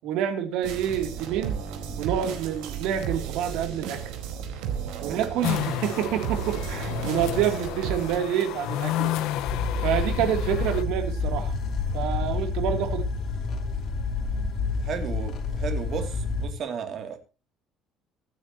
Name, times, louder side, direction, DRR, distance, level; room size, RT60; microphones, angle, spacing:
voice 1, 0.0-1.6 2.0-4.0 5.0-9.2 9.8-11.6 11.9-13.1, right 10 dB, 70° right, 3.1 m, -27 dB
sound 1, 0.6-8.2, right 7 dB, 85° right, 4.3 m, -33 dB
sound 2, 5.4-10.8, left 12 dB, 70° left, 1.3 m, -31 dB
sound 3, 8.0-16.5, left 4 dB, 45° left, 3.1 m, -29 dB
voice 2, 14.8-17.2, right 7 dB, 40° right, 2.8 m, -34 dB
24.5 x 9.9 x 3.0 m
cardioid pair, 180°, 0 cm